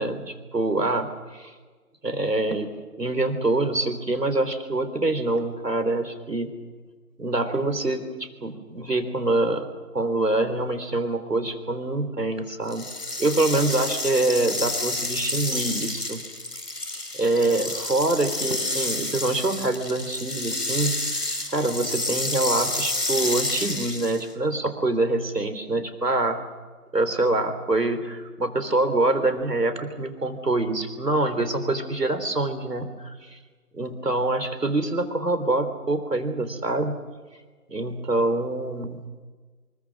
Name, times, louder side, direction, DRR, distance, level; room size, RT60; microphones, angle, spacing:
voice 1, 0.0-1.5 2.0-2.7 3.0-6.5 7.2-9.7 9.9-12.9 13.2-16.3 17.1-21.0 21.5-26.4 26.9-33.4 33.7-37.0 37.7-39.1, right 2 dB, 85° right, 9 dB, 3.7 m, -25 dB
sound 1, 12.7-24.3, left 2 dB, 85° left, 4.9 m, -29 dB
25.0 x 22.0 x 6.3 m, 1.4 s
figure-of-eight pair, 160°, 47 cm